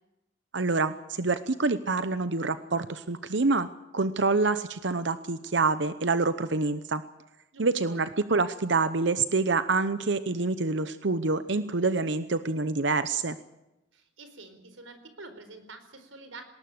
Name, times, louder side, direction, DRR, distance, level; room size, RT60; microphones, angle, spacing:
voice 1, 0.5-3.7 3.9-7.0 7.6-13.4, right 3 dB, 65° right, 12 dB, 0.9 m, -26 dB
voice 2, 7.5-8.0 13.9-16.4, right 3 dB, 85° right, 9 dB, 4.4 m, -47 dB
19.5 x 19.0 x 7.9 m, 0.95 s
head